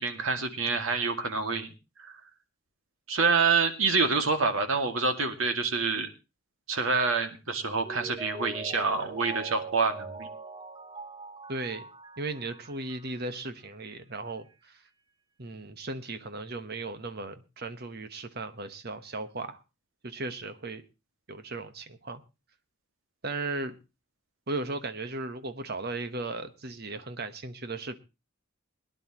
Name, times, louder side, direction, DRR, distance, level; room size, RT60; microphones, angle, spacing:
voice 1, 0.0-1.7 2.0-2.1 3.1-6.1 6.7-10.3, right 4 dB, 75° right, 6 dB, 2.2 m, -27 dB
Mallet percussion, 7.8-13.4 13.7-13.8, right 3 dB, 20° right, 1.0 m, -42 dB
voice 2, 11.5-11.8 12.2-14.8 15.4-19.6 20.0-20.8 21.3-22.2 23.2-23.8 24.5-28.0, right 2 dB, 50° right, 10 dB, 1.3 m, -36 dB
22.5 x 10.5 x 3.0 m, 0.28 s
head